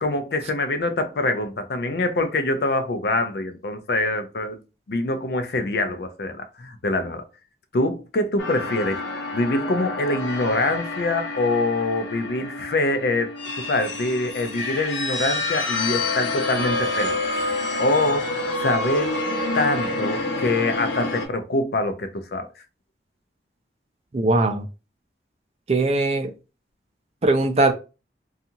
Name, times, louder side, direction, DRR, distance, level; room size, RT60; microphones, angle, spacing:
voice 1, 0.0-4.6 4.9-7.2 7.7-9.0 9.3-17.2 17.8-18.3 18.6-19.2 19.5-22.5, left 2 dB, 60° left, 0.4 m, -24 dB
sound 1, 8.4-21.2, left 2 dB, 90° left, 0.8 m, -28 dB
voice 2, 24.1-24.6 25.7-26.3 27.2-27.7, right 2 dB, 35° right, 0.4 m, -20 dB
2.7 x 2.4 x 2.7 m
head